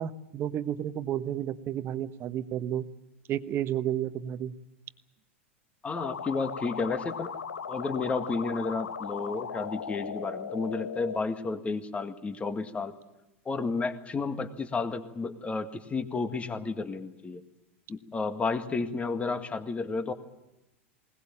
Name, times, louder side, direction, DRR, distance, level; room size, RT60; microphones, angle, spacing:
voice 1, 0.0-2.9 3.3-4.5, right 11 dB, 35° right, 12 dB, 1.2 m, -31 dB
voice 2, 5.8-7.3 7.7-12.9 13.5-17.4 17.9-20.1, left 4 dB, 20° left, 9 dB, 1.8 m, -32 dB
sound 1, 6.0-11.2, left 6 dB, 75° left, 1.0 m, -37 dB
20.5 x 20.0 x 8.7 m, 0.97 s
figure-of-eight pair, 90°, 7 cm